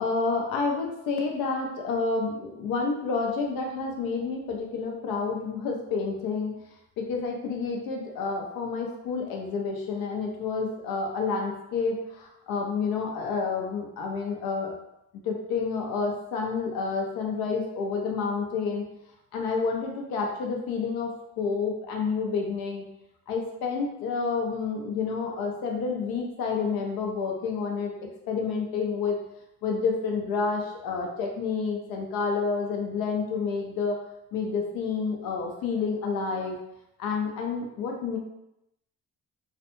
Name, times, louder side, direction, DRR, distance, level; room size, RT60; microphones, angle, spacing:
voice 1, 0.0-6.5 7.0-14.7 15.2-18.8 19.3-22.8 23.3-29.2 29.6-34.0 34.3-36.6 37.0-38.2, left 4 dB, 80° left, 0 dB, 0.6 m, -29 dB
2.4 x 2.1 x 2.9 m, 0.85 s
supercardioid pair, 60°, 36 cm